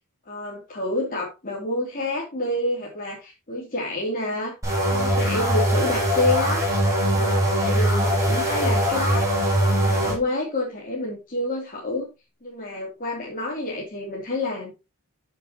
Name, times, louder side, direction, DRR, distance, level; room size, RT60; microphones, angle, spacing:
voice 1, 0.2-4.6 4.9-6.7 7.0-12.1 12.4-14.7, left 2 dB, 40° left, -4 dB, 3.0 m, -28 dB
sound 1, 4.6-10.2, equal, 15° right, 7.3 m, -22 dB
14.0 x 6.6 x 2.9 m, 0.26 s
head